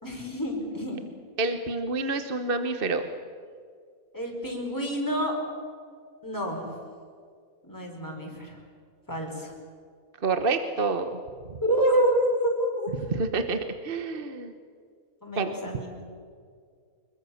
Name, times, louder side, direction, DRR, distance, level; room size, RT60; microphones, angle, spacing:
voice 1, 0.0-1.0 4.1-5.4 6.2-6.7 7.6-8.6 9.1-9.5 11.6-12.9 15.2-15.9, right 1 dB, 10° left, 0 dB, 4.9 m, -27 dB
voice 2, 1.4-3.1 10.2-11.2 11.5-11.6 13.1-14.5 15.3-15.5, right 3 dB, 40° right, 8 dB, 1.2 m, -28 dB
25.5 x 22.5 x 7.1 m, 2.1 s
omnidirectional pair, 1.5 m